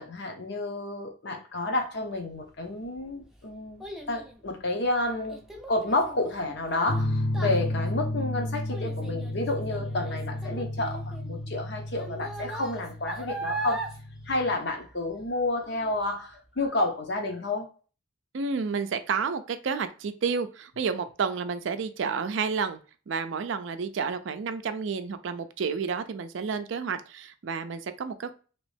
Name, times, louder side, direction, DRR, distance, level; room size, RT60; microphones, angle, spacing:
voice 1, 0.0-5.4 5.7-13.9 14.3-17.7, left 2 dB, 55° left, 0.8 m, -30 dB
Child speech kid speaking, 2.6-15.3 15.6-16.1 16.6-16.7, right 2 dB, ahead, 0.5 m, -40 dB
sound 1, 6.9-14.5, left 1 dB, 85° left, 0.9 m, -32 dB
voice 2, 18.3-22.8 23.1-28.3, right 5 dB, 65° right, 0.4 m, -30 dB
3.1 x 2.9 x 3.2 m
head